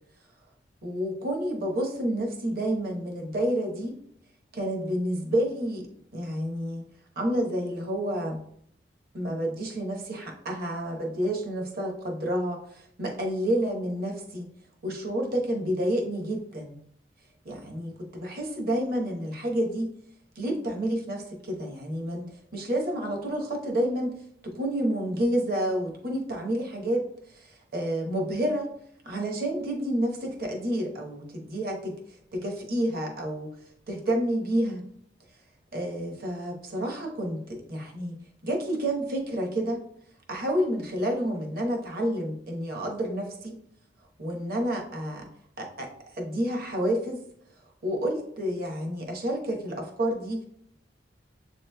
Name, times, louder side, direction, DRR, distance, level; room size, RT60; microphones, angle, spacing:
voice 1, 0.8-4.0 4.5-6.9 7.2-8.4 9.1-14.5 14.8-16.8 17.4-19.9 20.4-24.2 24.4-28.7 29.0-33.5 33.9-34.8 35.7-39.8 40.3-43.6 44.2-45.3 45.6-47.2 47.8-50.4, right 1 dB, 55° right, 0 dB, 0.9 m, -29 dB
7.5 x 3.0 x 2.2 m, 0.67 s
head